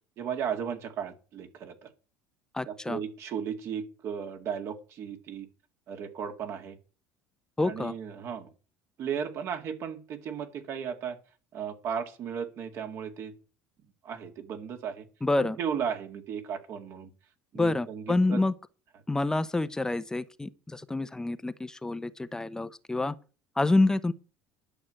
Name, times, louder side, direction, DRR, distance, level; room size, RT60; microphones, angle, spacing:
voice 1, 0.2-1.9 2.7-5.5 5.9-6.8 7.6-8.5 9.0-11.2 11.5-13.3 14.0-15.0 15.4-17.1 17.5-18.4, right 7 dB, 55° right, 2.2 m, -35 dB
voice 2, 2.5-3.0 7.6-7.9 15.2-15.6 17.6-18.5 19.1-23.1 23.6-24.1, left 2 dB, 10° left, 0.9 m, -27 dB
11.5 x 6.1 x 7.9 m
supercardioid pair, 100°, 6 cm